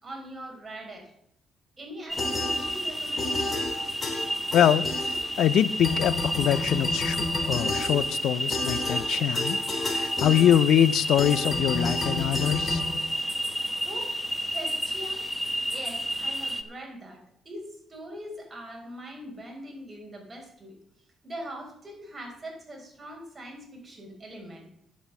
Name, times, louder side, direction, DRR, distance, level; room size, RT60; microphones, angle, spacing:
voice 1, 0.0-1.1 1.8-3.8 13.8-14.2 14.5-15.2 15.7-20.8 21.2-24.7, right 1 dB, 25° right, 0 dB, 4.6 m, -42 dB
sound 1, 2.1-16.6, equal, 5° left, 1.1 m, -30 dB
sound 2, 2.2-2.9 3.2-5.5 5.8-13.7, left 2 dB, 35° left, 3.1 m, -32 dB
voice 2, 4.5-7.2 7.5-9.6 9.9-12.8, left 10 dB, 80° left, 17 dB, 0.5 m, -24 dB
10.5 x 7.2 x 7.0 m, 0.74 s
cardioid pair, 90°, 0 cm